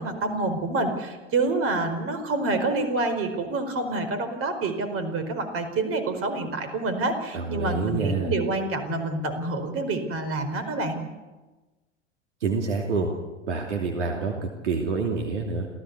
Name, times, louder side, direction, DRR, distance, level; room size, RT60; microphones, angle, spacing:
voice 1, 0.0-11.0, right 2 dB, 40° right, 9 dB, 4.7 m, -27 dB
voice 2, 7.3-8.3 12.4-13.1 13.5-15.7, right 4 dB, 75° right, 2 dB, 2.8 m, -27 dB
27.5 x 16.5 x 8.3 m, 1.2 s
figure-of-eight pair, 75°, 36 cm